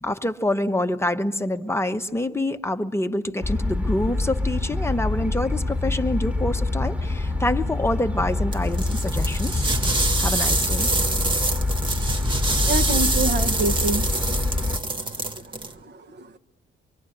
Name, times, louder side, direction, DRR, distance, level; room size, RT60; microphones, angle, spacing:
voice 1, 0.0-9.6 10.2-10.9, left 1 dB, 15° left, 8 dB, 0.8 m, -26 dB
sound 1, 3.4-14.8, left 2 dB, 5° right, 1.3 m, -25 dB
sound 2, 8.5-15.7, right 2 dB, 25° right, 1.1 m, -26 dB
voice 2, 12.7-14.3 15.3-15.4 15.8-16.3, right 3 dB, 60° right, 9 dB, 1.0 m, -27 dB
24.5 x 23.5 x 9.9 m, 1.2 s
cardioid pair, 90°, 20 cm